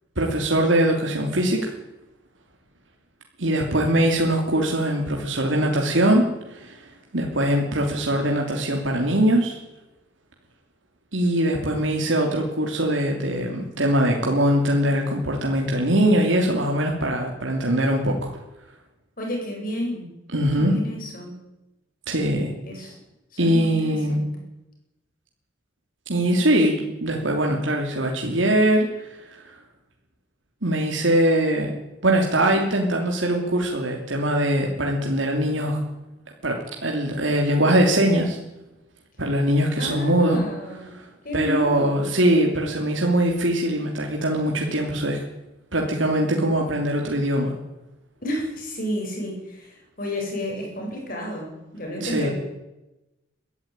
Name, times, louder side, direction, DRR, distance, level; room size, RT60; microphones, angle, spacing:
voice 1, 0.2-1.7 3.4-9.6 11.1-18.3 20.3-20.8 22.1-22.5 23.4-24.2 26.1-29.2 30.6-31.7 32.0-35.8 36.4-38.4 39.2-40.4 41.3-45.2 45.7-47.5 52.0-52.3, right 1 dB, 85° right, 1 dB, 2.9 m, -22 dB
voice 2, 19.2-20.1 20.6-21.3 22.6-23.0 23.3-24.2 39.8-40.9 41.2-42.1 48.2-52.3, left 1 dB, 45° left, 0 dB, 8.0 m, -31 dB
22.0 x 13.0 x 9.0 m, 0.97 s
head